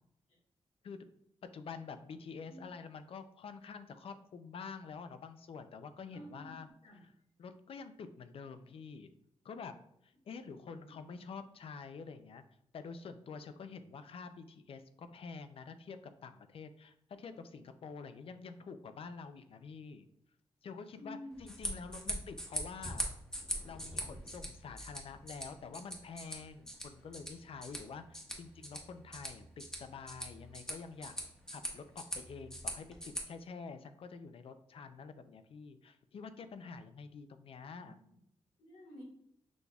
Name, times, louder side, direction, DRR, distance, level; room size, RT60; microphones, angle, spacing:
voice 1, 1.5-6.7 7.0-7.1 7.4-9.1 9.4-9.7 10.0-12.4 12.7-20.1 20.6-23.0 23.6-31.2 31.5-38.0, left 5 dB, 65° left, 10 dB, 0.4 m, -48 dB
voice 2, 6.1-7.0 10.6-11.0 21.0-21.4 23.5-23.6 37.8-38.2 38.6-39.0, left 1 dB, 90° left, -3 dB, 1.7 m, -52 dB
sound 1, 21.3-33.2, equal, 5° left, 0.9 m, -43 dB
6.1 x 3.4 x 2.3 m, 0.74 s
wide cardioid pair, 120°, 11 cm